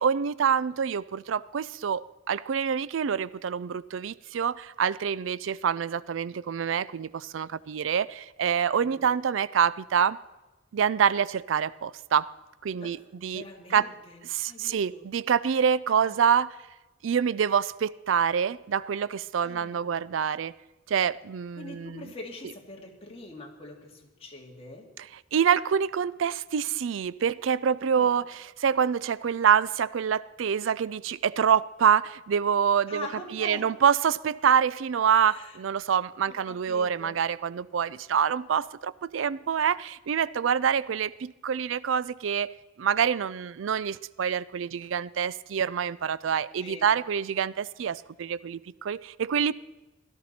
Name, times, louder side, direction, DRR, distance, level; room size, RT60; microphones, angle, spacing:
voice 1, 0.0-10.2 10.7-12.3 12.6-13.4 13.7-13.9 14.3-16.6 17.0-20.5 20.9-22.0 25.0-25.1 25.3-33.1 33.3-42.5 42.8-49.5, right 7 dB, 80° right, 0.4 m, -26 dB
voice 2, 8.7-9.1 12.8-12.9 13.3-15.0 15.9-16.2 19.4-20.0 21.6-24.9 27.9-28.2 32.9-33.6 35.3-35.6 36.3-37.2 46.6-46.9, left 1 dB, 30° left, 2.3 m, -43 dB
16.5 x 12.5 x 4.3 m
head